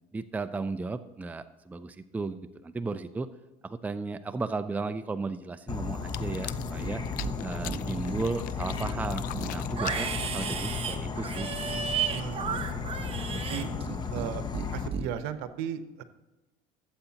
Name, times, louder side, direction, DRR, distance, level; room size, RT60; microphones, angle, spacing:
voice 1, 0.1-3.3 3.6-7.0 7.4-11.5, right 3 dB, 10° right, 10 dB, 0.4 m, -35 dB
Insect / Frog, 5.7-14.9, left 5 dB, 25° left, 0.9 m, -34 dB
sound 1, 5.9-10.8, left 15 dB, 60° left, 0.4 m, -42 dB
Livestock farm animals working animals, 6.7-7.3 7.6-8.3 8.7-14.3 14.5-15.1, right 7 dB, 35° right, 1.0 m, -34 dB
voice 2, 12.1-12.8 13.1-13.7 14.1-14.4 14.7-16.0, right 9 dB, 75° right, 10 dB, 0.9 m, -36 dB
15.5 x 8.0 x 2.9 m, 1.1 s
supercardioid pair, 110°, 17 cm